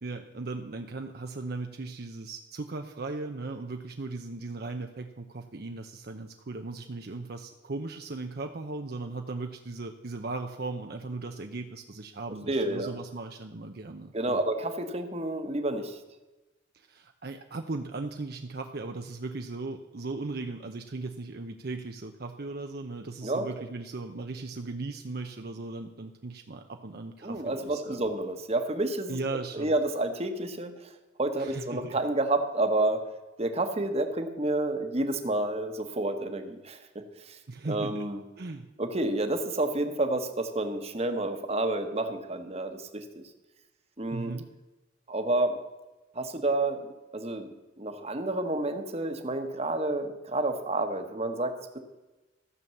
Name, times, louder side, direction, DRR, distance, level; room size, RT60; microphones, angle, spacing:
voice 1, 0.0-14.4 16.7-28.0 29.1-29.7 31.4-31.9 37.5-38.1 38.4-38.6 44.1-44.5, right 3 dB, 60° right, 5 dB, 0.7 m, -37 dB
voice 2, 12.5-12.9 14.1-16.0 23.2-23.4 27.2-29.2 29.5-30.9 31.2-33.0 33.4-36.8 37.3-37.4 37.7-38.2 38.8-43.2 44.0-44.4 45.1-45.6 46.1-46.9 47.1-51.8, right 2 dB, 35° right, 7 dB, 1.3 m, -29 dB
14.0 x 7.0 x 7.0 m, 1.1 s
head